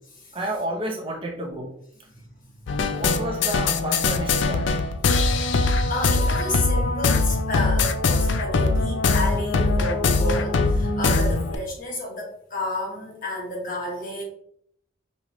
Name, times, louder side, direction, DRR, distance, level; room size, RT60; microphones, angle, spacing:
voice 1, 0.3-1.7 3.0-4.7, right 1 dB, 25° right, 1 dB, 0.7 m, -30 dB
voice 2, 2.1-3.0 4.9-14.2, left 1 dB, 40° left, -1 dB, 1.3 m, -31 dB
sound 1, 2.7-11.6, left 3 dB, 65° left, 0.4 m, -22 dB
5.3 x 3.1 x 3.0 m, 0.69 s
head